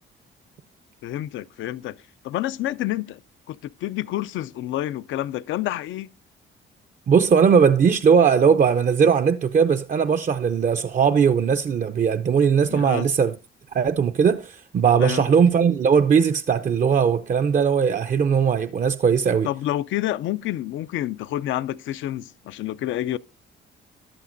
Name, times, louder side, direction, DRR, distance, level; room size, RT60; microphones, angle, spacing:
voice 1, 1.0-2.0 2.2-3.2 3.5-6.1 12.7-13.1 15.0-15.2 19.4-23.2, left 14 dB, 75° left, 0.4 m, -28 dB
voice 2, 7.1-13.4 13.7-19.5, right 6 dB, 40° right, 0.5 m, -19 dB
14.0 x 11.0 x 2.6 m
cardioid pair, 90°, 20 cm